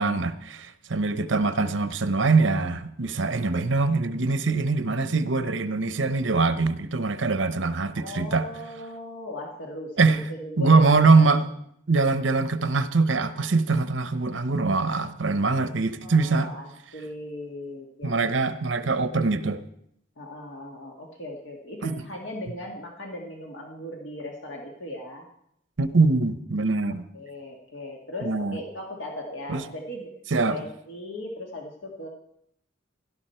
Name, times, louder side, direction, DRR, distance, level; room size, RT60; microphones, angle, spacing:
voice 1, 0.0-8.5 10.0-10.2 10.6-11.5 11.9-16.5 18.0-19.6 21.8-21.9 25.8-27.1 28.2-28.6 29.5-29.6 30.3-30.6, right 3 dB, 75° right, 0.9 m, -23 dB
voice 2, 8.0-11.2 16.0-18.1 20.2-25.3 27.1-30.1 30.5-32.1, left 1 dB, 70° left, 1.8 m, -38 dB
17.0 x 12.0 x 4.4 m
head